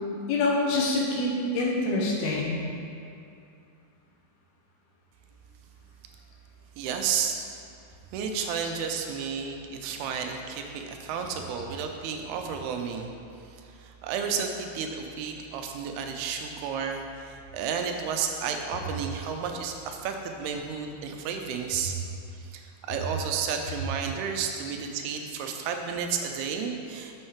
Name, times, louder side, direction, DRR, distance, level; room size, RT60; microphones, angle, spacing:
voice 1, 0.3-2.6 9.2-9.3, left 2 dB, 80° left, -3 dB, 3.0 m, -26 dB
voice 2, 6.8-7.4 8.1-13.1 13.4-21.9 22.3-27.2, right 6 dB, 85° right, 4 dB, 2.6 m, -32 dB
6.5 x 6.4 x 4.5 m, 2.4 s
omnidirectional pair, 4.4 m